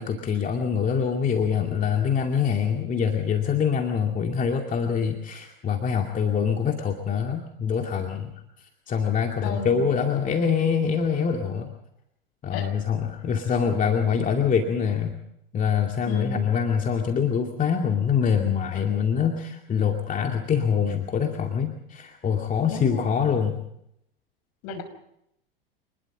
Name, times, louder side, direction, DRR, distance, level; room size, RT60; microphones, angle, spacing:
voice 1, 0.0-11.7 12.4-15.2 15.5-23.6, left 7 dB, 25° left, 3 dB, 2.4 m, -25 dB
voice 2, 9.4-9.9 12.5-12.7 16.1-16.4 22.7-23.3 24.6-24.8, left 5 dB, 55° left, 7 dB, 5.8 m, -34 dB
26.5 x 20.5 x 5.2 m, 0.77 s
hypercardioid pair, 90°, 29 cm